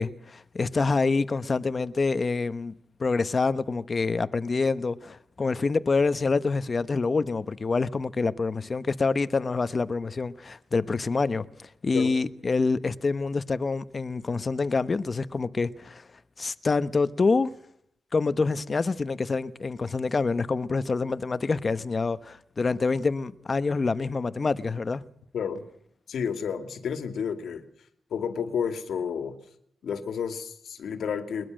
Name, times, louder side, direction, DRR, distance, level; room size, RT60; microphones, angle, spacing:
voice 1, 0.0-2.7 3.0-16.0 16.4-17.5 18.1-25.0, left 4 dB, 35° left, 1.0 m, -26 dB
voice 2, 25.3-25.6 26.1-27.7 28.1-29.4 29.8-31.5, left 7 dB, 80° left, 2.3 m, -31 dB
21.5 x 21.5 x 6.5 m
wide cardioid pair, 120°, 0 cm